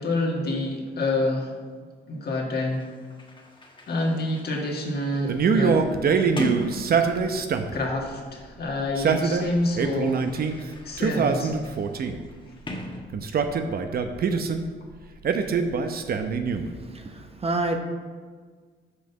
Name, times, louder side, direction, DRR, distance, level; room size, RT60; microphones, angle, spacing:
voice 1, 0.0-1.5 2.1-2.9 3.9-5.8 7.0-7.1 7.7-10.2 10.5-11.6, left 2 dB, 55° left, 0 dB, 1.9 m, -28 dB
Sliding door, 2.7-7.7 8.7-13.6, left 1 dB, 25° left, 1.3 m, -40 dB
Male speech man speaking, 5.3-7.8 8.8-10.6 11.0-12.3 13.1-14.6 15.2-16.8, right 5 dB, 50° right, 0.7 m, -24 dB
voice 2, 16.9-17.8, right 2 dB, 30° right, 4 dB, 0.9 m, -28 dB
6.6 x 5.2 x 6.9 m, 1.6 s
cardioid pair, 90°, 20 cm